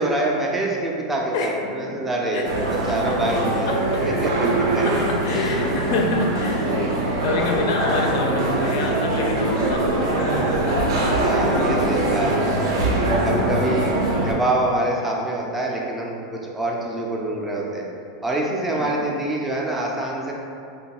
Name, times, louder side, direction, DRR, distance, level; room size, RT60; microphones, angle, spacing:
voice 1, 0.0-3.8 4.0-4.3 4.8-4.9 5.3-5.5 11.2-12.6 13.0-17.8 18.2-20.3, right 1 dB, 5° right, -2 dB, 0.3 m, -25 dB
voice 2, 1.3-2.0 2.3-2.4 2.9-3.1 3.6-7.0 7.2-10.5 13.4-13.5 18.7-18.9, left 3 dB, 60° left, 1 dB, 0.4 m, -27 dB
sound 1, 2.4-14.3, right 2 dB, 85° right, 0.6 m, -22 dB
3.0 x 2.2 x 2.8 m, 2.4 s
supercardioid pair, 155°, 2 cm